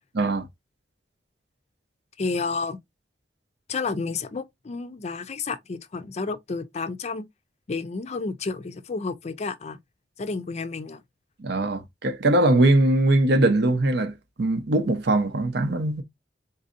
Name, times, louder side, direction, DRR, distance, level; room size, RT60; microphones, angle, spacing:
voice 1, 0.1-0.5 11.4-16.0, right 1 dB, 65° right, 0.7 m, -21 dB
voice 2, 2.2-2.8 3.7-7.3 7.7-9.8 10.2-11.0, left 4 dB, 40° left, 0.4 m, -31 dB
4.0 x 2.6 x 2.5 m
head